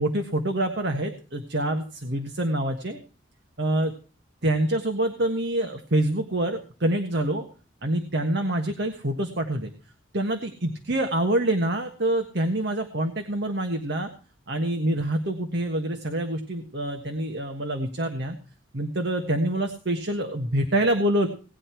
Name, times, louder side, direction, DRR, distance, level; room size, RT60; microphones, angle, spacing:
voice 1, 0.0-3.0 3.6-3.9 4.4-7.5 7.8-9.7 10.1-14.1 14.5-18.4 18.7-21.3, right 1 dB, 55° right, 4 dB, 1.5 m, -26 dB
18.0 x 10.0 x 4.5 m, 0.37 s
head